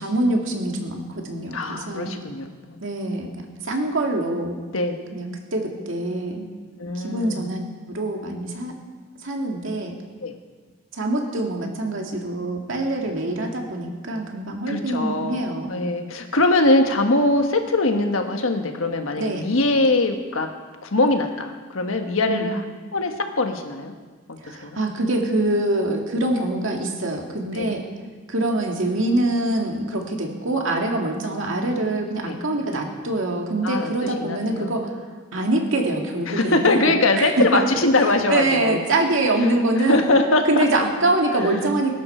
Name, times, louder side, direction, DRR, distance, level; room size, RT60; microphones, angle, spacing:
voice 1, 0.0-2.1 2.8-3.3 3.6-4.6 5.1-6.5 6.9-8.7 9.2-9.9 10.9-15.8 19.2-19.4 22.3-22.5 24.4-27.8 28.3-34.9 35.3-37.4 38.3-40.0 40.5-41.9, right 2 dB, 70° right, 1 dB, 2.2 m, -24 dB
voice 2, 1.5-2.8 4.7-4.9 6.8-7.5 10.2-10.3 14.7-20.5 20.8-22.6 22.9-23.9 24.4-24.8 27.5-27.8 32.2-32.4 33.6-34.7 36.3-38.8 39.8-40.7, left 2 dB, 85° left, 5 dB, 1.4 m, -22 dB
21.0 x 11.5 x 4.5 m, 1.4 s
head